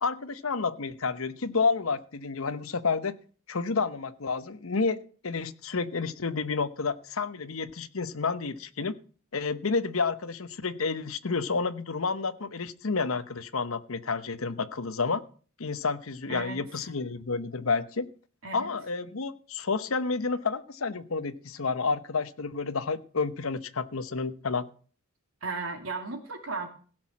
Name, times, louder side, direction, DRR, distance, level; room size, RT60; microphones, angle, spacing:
voice 1, 0.0-3.1 3.5-5.0 5.2-8.9 9.3-15.2 15.6-18.1 18.5-24.6, left 4 dB, 80° left, 13 dB, 0.9 m, -30 dB
voice 2, 16.3-16.6 18.4-18.7 25.4-26.7, right 3 dB, 85° right, 5 dB, 2.7 m, -35 dB
16.5 x 6.2 x 7.4 m, 0.42 s
head